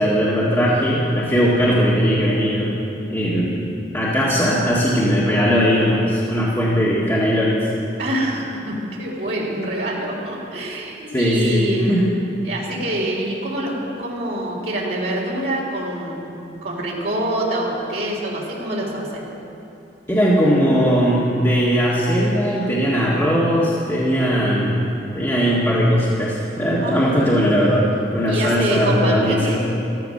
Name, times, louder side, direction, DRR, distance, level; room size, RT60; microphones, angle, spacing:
voice 1, 0.0-3.5 3.9-7.7 11.1-12.0 20.1-24.8 25.2-29.5, equal, 15° left, -7 dB, 1.8 m, -19 dB
voice 2, 8.0-19.2 25.4-25.8 26.8-27.4 28.3-29.6, right 1 dB, 55° right, -4 dB, 3.6 m, -26 dB
14.0 x 14.0 x 6.5 m, 2.8 s
head